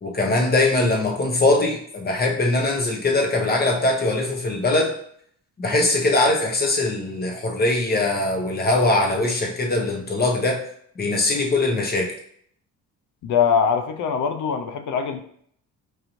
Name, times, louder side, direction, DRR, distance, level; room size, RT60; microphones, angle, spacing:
voice 1, 0.0-4.9 5.6-10.6 11.0-12.1, left 2 dB, 25° left, 1 dB, 0.9 m, -21 dB
voice 2, 13.2-15.2, left 6 dB, 55° left, 7 dB, 0.5 m, -22 dB
4.6 x 2.6 x 3.0 m, 0.65 s
cardioid pair, 95°, 36 cm